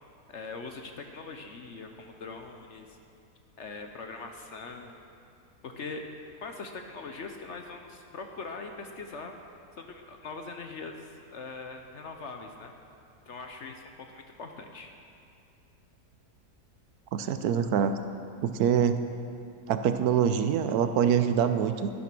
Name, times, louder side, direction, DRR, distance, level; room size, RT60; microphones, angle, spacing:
voice 1, 0.3-3.0 3.6-5.1 5.6-6.0 6.4-9.3 9.8-12.7 13.3-13.8 14.1-14.9, left 4 dB, 55° left, 4 dB, 0.9 m, -41 dB
voice 2, 17.1-17.9 18.4-19.0 19.7-21.9, right 8 dB, 75° right, 9 dB, 1.1 m, -25 dB
11.5 x 11.0 x 6.1 m, 2.5 s
omnidirectional pair, 1.7 m